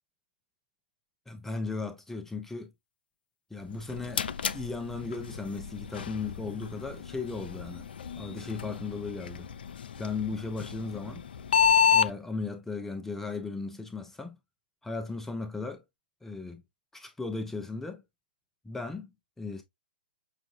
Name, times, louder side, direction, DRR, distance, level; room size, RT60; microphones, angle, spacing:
voice 1, 1.3-2.7 3.5-4.2 4.5-7.9 8.2-9.5 10.0-11.2 11.9-14.3 14.8-15.8 16.2-16.6 16.9-18.0 18.6-19.1 19.4-19.6, left 3 dB, 5° left, 0.6 m, -36 dB
sound 1, 3.6-12.1, left 7 dB, 70° left, 0.4 m, -30 dB
5.8 x 2.5 x 2.8 m
hypercardioid pair, 120°, 6 cm